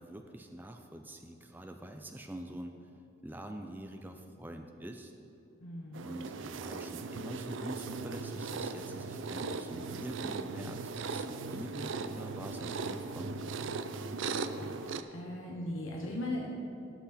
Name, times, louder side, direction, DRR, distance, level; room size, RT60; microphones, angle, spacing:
voice 1, 0.0-2.9 3.2-5.1 5.9-13.9, right 1 dB, 10° right, 4 dB, 0.4 m, -45 dB
voice 2, 5.6-6.1 15.1-16.5, left 1 dB, 70° left, -1 dB, 1.0 m, -38 dB
sound 1, 5.9-15.0, right 4 dB, 65° right, 0.5 m, -38 dB
17.0 x 6.0 x 4.2 m, 2.7 s
head